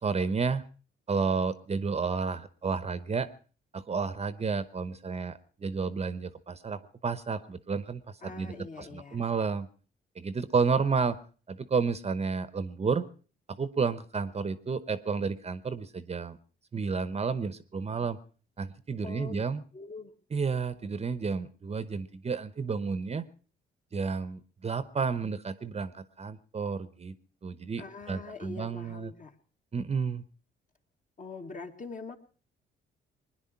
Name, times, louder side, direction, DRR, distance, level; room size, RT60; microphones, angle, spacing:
voice 1, 0.0-0.6 1.1-3.3 3.7-9.7 10.2-11.2 11.5-13.1 13.5-16.4 16.7-18.2 18.6-19.6 20.3-23.3 23.9-27.2 27.4-29.1 29.7-30.2, right 5 dB, 30° right, 14 dB, 0.9 m, -31 dB
voice 2, 8.2-9.2 19.0-19.4 19.7-20.1 27.8-29.4 31.2-32.2, left 4 dB, 40° left, 4 dB, 2.0 m, -43 dB
21.0 x 10.5 x 5.7 m, 0.40 s
cardioid pair, 90°, 20 cm